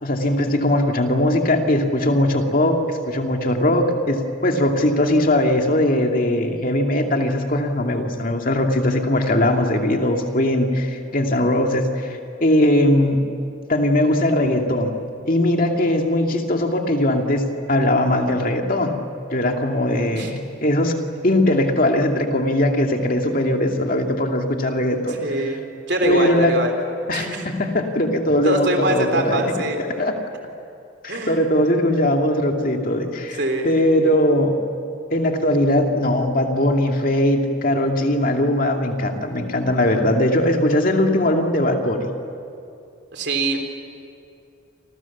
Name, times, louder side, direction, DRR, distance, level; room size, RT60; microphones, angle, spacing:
voice 1, 0.0-13.2 13.7-14.9 15.3-17.4 17.7-18.9 19.3-20.9 21.2-25.2 26.0-26.5 27.1-29.4 29.8-30.1 31.0-34.6 35.1-42.1, left 1 dB, 45° left, 3 dB, 2.4 m, -20 dB
voice 2, 25.1-25.6 25.9-26.7 27.1-27.5 28.4-29.8 31.1-31.4 33.4-33.8 43.1-43.6, right 1 dB, 60° right, 5 dB, 3.8 m, -23 dB
29.0 x 27.0 x 7.3 m, 2.6 s
head